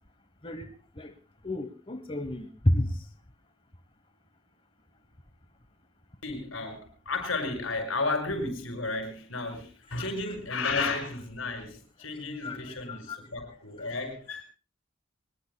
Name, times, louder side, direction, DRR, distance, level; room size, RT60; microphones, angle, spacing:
voice 1, 1.4-3.0 9.9-10.3 12.1-13.2 13.8-13.9, left 1 dB, 25° left, 1.1 m, -31 dB
voice 2, 6.2-14.4, left 3 dB, 85° left, 5.9 m, -33 dB
24.0 x 21.0 x 2.2 m
head